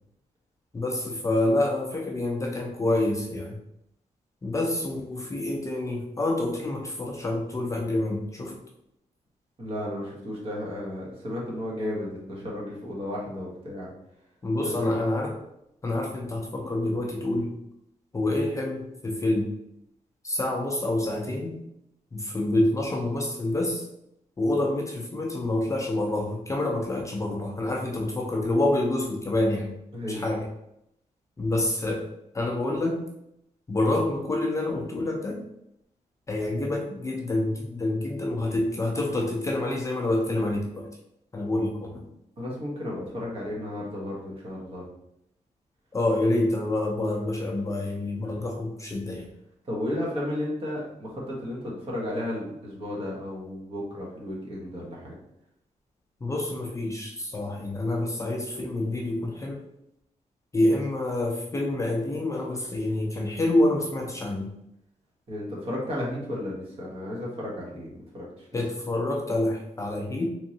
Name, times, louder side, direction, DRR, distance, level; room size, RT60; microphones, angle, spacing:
voice 1, 0.7-3.6 4.4-8.6 14.4-15.4 15.8-17.5 18.1-19.5 20.2-21.6 22.1-23.9 24.4-29.8 30.1-30.5 31.4-32.1 32.3-33.0 33.7-35.4 36.3-40.9 41.3-42.1 45.9-49.3 56.2-59.6 60.5-64.5 68.5-70.3, left 1 dB, 25° left, 0 dB, 0.4 m, -27 dB
voice 2, 9.6-13.9 14.8-15.0 29.9-30.2 42.4-44.8 48.3-48.4 49.7-55.2 65.3-68.5, left 1 dB, 45° right, -4 dB, 1.3 m, -33 dB
3.6 x 3.1 x 2.8 m, 0.81 s
wide cardioid pair, 150°, 13 cm